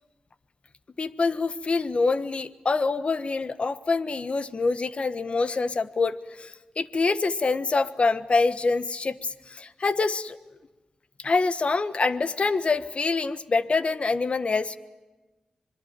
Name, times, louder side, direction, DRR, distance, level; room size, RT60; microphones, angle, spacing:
voice 1, 1.0-10.4 11.2-14.8, left 3 dB, 55° left, 14 dB, 1.3 m, -25 dB
26.0 x 22.0 x 9.0 m, 1.2 s
cardioid pair, 60°, 2 cm